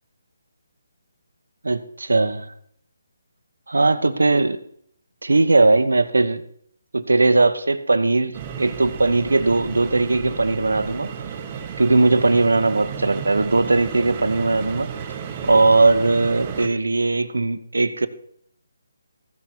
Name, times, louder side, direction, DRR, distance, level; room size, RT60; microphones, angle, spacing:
voice 1, 1.6-2.5 3.7-4.6 5.2-6.4 6.9-11.1 11.8-14.9 15.4-18.1, right 3 dB, 85° right, 12 dB, 1.2 m, -19 dB
sound 1, 8.3-16.7, right 7 dB, 30° right, 1.4 m, -33 dB
15.0 x 7.3 x 6.2 m, 0.66 s
figure-of-eight pair, 155°, 0 cm